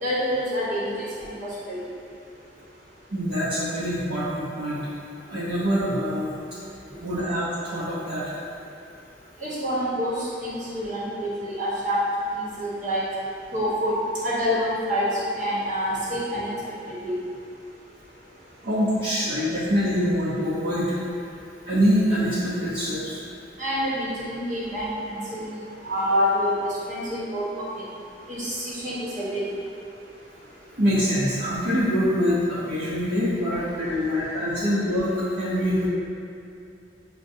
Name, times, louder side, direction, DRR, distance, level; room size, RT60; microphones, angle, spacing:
voice 1, 0.0-1.8 9.4-12.0 12.4-13.0 13.5-15.1 15.4-16.5 16.9-17.2 23.6-27.8 28.3-29.4, equal, 45° right, -8 dB, 1.1 m, -27 dB
voice 2, 3.1-4.9 5.3-6.3 7.0-8.3 18.6-20.9 21.7-23.2 30.8-35.1 35.4-35.9, equal, 65° right, -11 dB, 0.7 m, -24 dB
6.4 x 2.2 x 2.6 m, 2.5 s
head